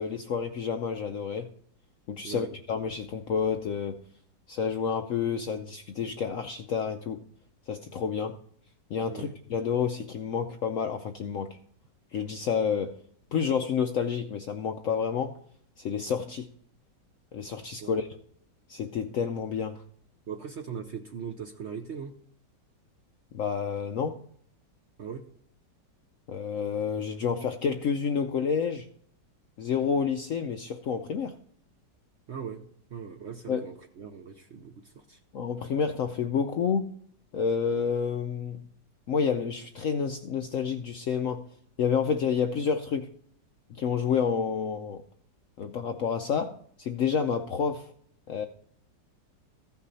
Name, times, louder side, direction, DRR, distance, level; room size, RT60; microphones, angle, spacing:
voice 1, 0.0-1.5 2.1-4.0 4.5-7.2 7.7-8.4 8.9-11.6 12.1-13.0 13.3-15.4 15.8-16.5 17.3-18.1 18.7-19.8 23.3-24.2 26.3-28.9 29.6-31.3 33.5-33.7 35.3-36.9 37.3-38.6 39.1-41.5 41.8-43.1 43.7-45.0 45.6-47.9 48.3-48.5, left 6 dB, 70° left, 7 dB, 0.8 m, -29 dB
voice 2, 20.3-22.1 25.0-25.2 32.3-32.6 32.9-35.2, right 7 dB, 55° right, 5 dB, 0.8 m, -39 dB
15.0 x 5.9 x 4.1 m, 0.62 s
omnidirectional pair, 1.9 m